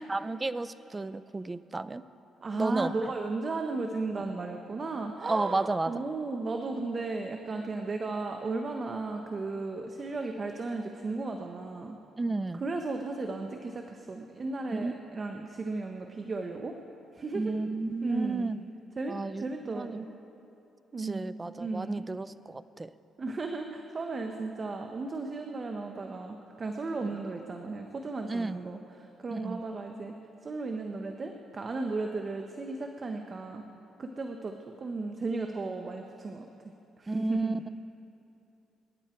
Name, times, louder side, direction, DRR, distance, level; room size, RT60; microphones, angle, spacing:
voice 1, 0.1-2.0 2.6-2.9 5.2-5.9 12.2-12.6 14.7-15.0 17.3-18.6 19.1-20.0 21.0-22.9 28.3-28.6 29.3-29.6 37.1-37.7, right 3 dB, 20° right, 14 dB, 0.5 m, -32 dB
voice 2, 2.4-12.0 12.6-16.8 17.1-17.6 18.0-18.5 19.0-20.1 20.9-21.2 21.6-22.1 23.2-30.1 30.4-33.6 34.0-36.5 37.0-37.6, right 3 dB, 35° right, 4 dB, 1.0 m, -35 dB
25.5 x 11.0 x 4.5 m, 2.8 s
cardioid pair, 90°, 0 cm